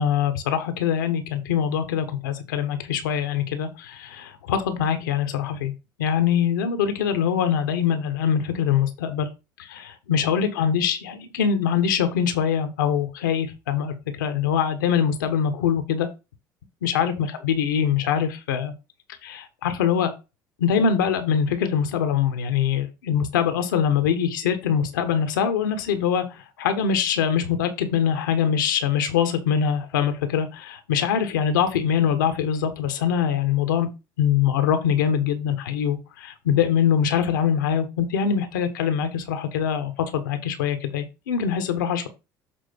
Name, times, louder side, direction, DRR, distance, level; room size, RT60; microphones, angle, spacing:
voice 1, 0.0-5.7 6.0-9.3 9.6-16.1 16.8-18.7 19.2-20.1 20.6-26.2 26.6-33.9 34.2-42.1, left 8 dB, 85° left, 8 dB, 1.3 m, -23 dB
7.5 x 3.7 x 5.3 m, 0.27 s
hypercardioid pair, 70°, 10 cm